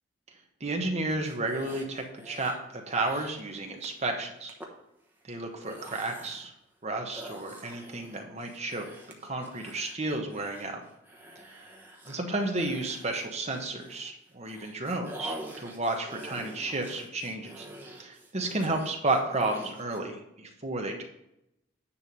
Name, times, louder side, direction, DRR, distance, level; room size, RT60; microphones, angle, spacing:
voice 1, 0.6-4.5 5.3-6.5 6.8-8.9 9.2-10.8 12.1-17.7 18.0-21.0, right 2 dB, 35° right, 3 dB, 1.3 m, -32 dB
sound 1, 1.1-2.6 2.9-3.4 3.8-4.0 4.5-4.7 5.4-6.5 7.1-14.1 14.4-20.0, right 1 dB, 10° right, 1.1 m, -46 dB
9.8 x 3.5 x 6.8 m, 0.83 s
head